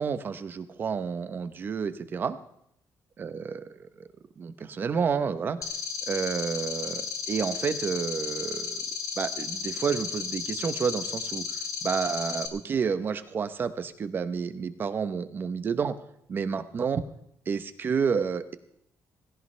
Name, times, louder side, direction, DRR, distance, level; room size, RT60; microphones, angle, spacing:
voice 1, 0.0-2.4 3.2-4.1 4.4-5.6 6.1-8.8 9.2-11.4 11.8-16.0 16.3-17.0 17.5-18.6, right 6 dB, 30° right, 11 dB, 0.9 m, -30 dB
sound 1, 5.6-12.5, left 6 dB, 60° left, 1.7 m, -34 dB
17.5 x 16.5 x 3.3 m, 0.73 s
cardioid pair, 180°, 7 cm